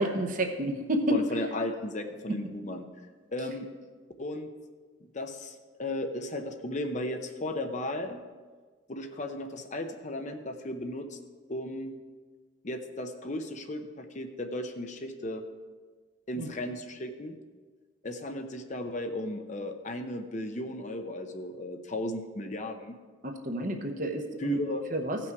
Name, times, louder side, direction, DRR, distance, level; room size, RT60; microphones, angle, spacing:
voice 1, 0.0-1.2 16.4-16.5 23.2-24.6 24.9-25.2, right 1 dB, 40° right, 4 dB, 0.9 m, -29 dB
voice 2, 1.1-2.9 3.3-3.7 4.2-4.5 5.1-8.2 8.9-11.2 11.5-11.9 12.6-15.4 16.3-17.3 18.0-23.0 24.4-24.9, left 1 dB, 35° left, 6 dB, 0.7 m, -35 dB
16.0 x 6.0 x 4.7 m, 1.4 s
head